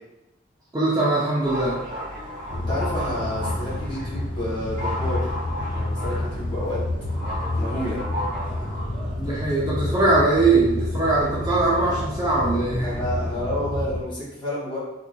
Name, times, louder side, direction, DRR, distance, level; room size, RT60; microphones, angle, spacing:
voice 1, 0.7-1.8 9.2-12.9, right 2 dB, 20° right, -6 dB, 0.5 m, -21 dB
sound 1, 1.4-13.4, equal, 40° right, 1.3 m, -35 dB
sound 2, 2.5-14.0, left 1 dB, 55° left, 0.5 m, -29 dB
voice 2, 2.5-5.3 5.7-6.8 7.6-8.0 12.8-14.8, left 1 dB, 25° left, -8 dB, 1.4 m, -30 dB
3.7 x 2.9 x 2.2 m, 0.96 s
head